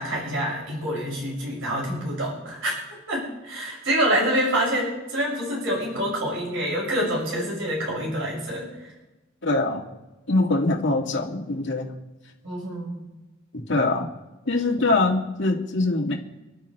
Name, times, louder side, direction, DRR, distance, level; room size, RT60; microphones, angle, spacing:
voice 1, 0.0-2.7 3.1-8.9 12.4-13.0, equal, 80° right, -4 dB, 6.7 m, -26 dB
voice 2, 9.4-9.8 10.3-11.9 13.5-14.1 14.5-16.1, left 2 dB, 65° left, 1 dB, 2.2 m, -23 dB
30.0 x 11.5 x 3.4 m, 1.1 s
head